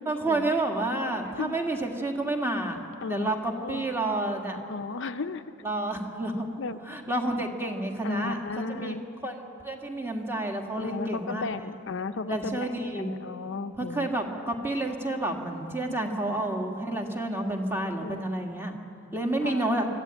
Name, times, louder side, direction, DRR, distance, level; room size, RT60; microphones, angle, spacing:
voice 1, 0.1-4.6 5.6-6.5 6.8-9.0 9.2-11.5 12.3-13.1 13.7-18.7 19.1-19.9, right 2 dB, 10° right, 2 dB, 1.9 m, -30 dB
voice 2, 4.7-5.4 6.6-6.8 8.0-9.0 10.8-14.1 16.3-16.4 18.0-18.2 19.4-19.6, left 3 dB, 65° left, 9 dB, 0.6 m, -35 dB
25.0 x 13.5 x 9.0 m, 2.7 s
head